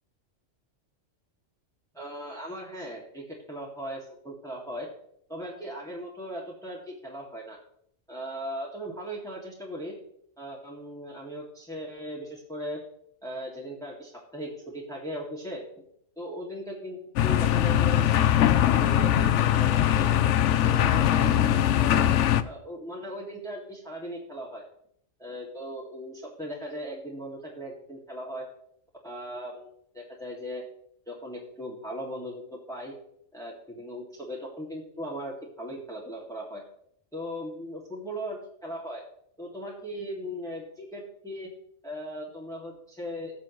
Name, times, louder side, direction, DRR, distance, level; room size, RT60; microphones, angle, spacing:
voice 1, 1.9-4.9 5.3-7.6 8.1-9.9 10.4-12.8 13.2-15.6 16.2-20.1 20.6-22.1 22.4-24.7 25.2-28.5 29.0-29.7 29.9-30.6 31.1-32.9 33.3-36.6 37.1-39.0 39.4-41.5 41.8-43.3, equal, 5° left, -4 dB, 2.1 m, -38 dB
sound 1, 17.2-22.4, left 11 dB, 70° left, 0.9 m, -21 dB
18.0 x 7.5 x 3.1 m, 0.68 s
omnidirectional pair, 1.3 m